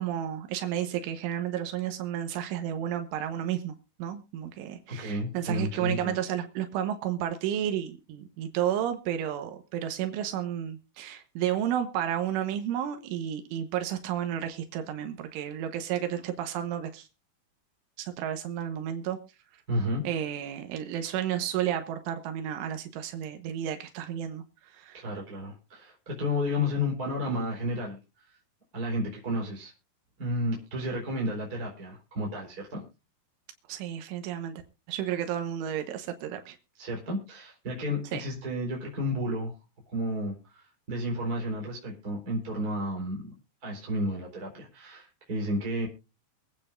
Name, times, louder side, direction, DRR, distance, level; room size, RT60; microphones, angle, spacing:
voice 1, 0.0-17.1 18.0-19.2 20.0-25.0 33.7-34.6 34.9-36.6 38.1-38.2, right 10 dB, 85° right, 3.6 m, -32 dB
voice 2, 4.9-6.2 19.7-20.0 24.9-28.0 28.7-29.7 30.2-32.8 36.8-39.5 39.9-43.3 43.6-45.9, left 1 dB, 20° right, 4.2 m, -32 dB
24.5 x 8.8 x 2.6 m
omnidirectional pair, 5.4 m